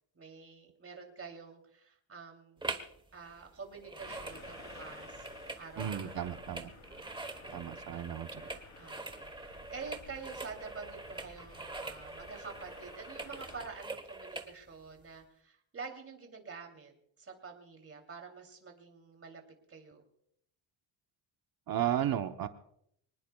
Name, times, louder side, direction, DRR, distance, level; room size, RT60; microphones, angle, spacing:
voice 1, 0.1-2.6 3.1-5.3 5.6-6.5 8.3-19.4 19.7-20.0, right 5 dB, 30° right, 3 dB, 2.9 m, -48 dB
sound 1, 2.6-3.0 3.2-14.5 15.0-15.1, right 2 dB, 10° right, 1.1 m, -44 dB
sound 2, 4.0-13.7, left 3 dB, 35° left, 3.5 m, -54 dB
voice 2, 5.8-6.7 7.5-8.5 21.7-22.5, right 11 dB, 45° right, 7 dB, 0.9 m, -34 dB
25.0 x 19.5 x 2.3 m, 0.72 s
cardioid pair, 140°, 48 cm